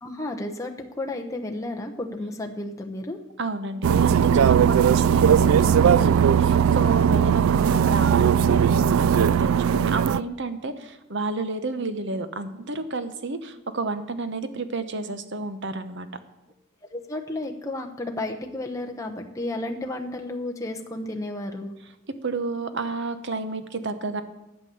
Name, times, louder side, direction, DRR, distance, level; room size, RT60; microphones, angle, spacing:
voice 1, 0.0-3.2 16.9-21.7, left 2 dB, 15° left, 2 dB, 1.0 m, -32 dB
voice 2, 3.4-16.1 22.2-24.2, right 3 dB, 60° right, 10 dB, 1.0 m, -30 dB
sound 1, 3.8-10.2, right 8 dB, 85° right, 0.3 m, -19 dB
12.0 x 8.4 x 6.9 m, 0.95 s
head